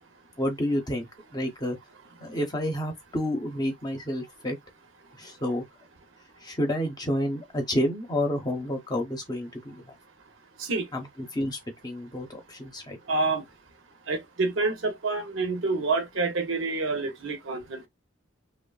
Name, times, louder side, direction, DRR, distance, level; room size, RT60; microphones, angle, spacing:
voice 1, 0.4-1.8 2.2-4.6 5.2-5.6 6.4-9.9 10.9-13.0, equal, 20° left, 0.7 m, -30 dB
voice 2, 13.1-13.4 14.1-17.9, right 3 dB, 65° right, 0.7 m, -27 dB
3.0 x 2.1 x 2.3 m
head